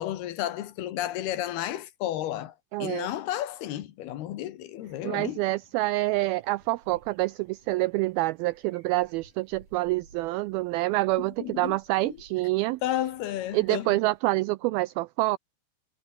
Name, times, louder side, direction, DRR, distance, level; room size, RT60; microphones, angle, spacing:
voice 1, 0.0-2.5 2.8-5.4 11.4-11.8 12.0-12.2 12.8-14.0, left 12 dB, 70° left, 3.3 m, -32 dB
voice 2, 2.7-3.1 5.0-12.8 13.5-15.4, right 20 dB, 90° right, 2.1 m, -27 dB
sound 1, 4.8-14.2, right 4 dB, 45° right, 8.0 m, -59 dB
omnidirectional pair, 4.8 m